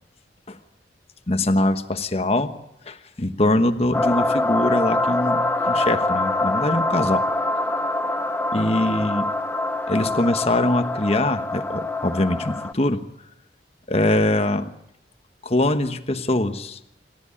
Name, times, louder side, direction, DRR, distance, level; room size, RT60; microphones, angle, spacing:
voice 1, 1.3-2.5 2.8-7.3 8.5-9.3 9.9-13.0 13.9-14.7 15.4-16.8, left 1 dB, 35° left, 8 dB, 1.2 m, -23 dB
sound 1, 3.9-12.7, left 2 dB, 10° left, 0.7 m, -24 dB
27.0 x 13.5 x 8.7 m, 0.84 s
head